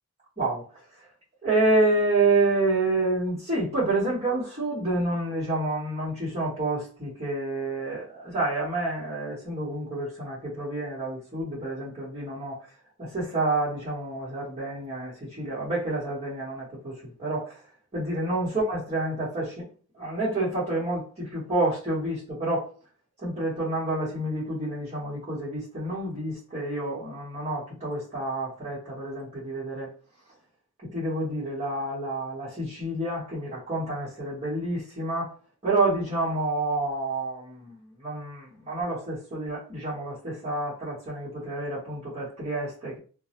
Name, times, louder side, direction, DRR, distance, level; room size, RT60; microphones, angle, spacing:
voice 1, 1.4-12.6 13.0-17.6 17.9-19.6 19.9-22.7 23.2-29.9 30.9-35.3 35.6-43.0, right 2 dB, 30° right, 0.9 m, -28 dB
2.1 x 2.0 x 2.8 m
head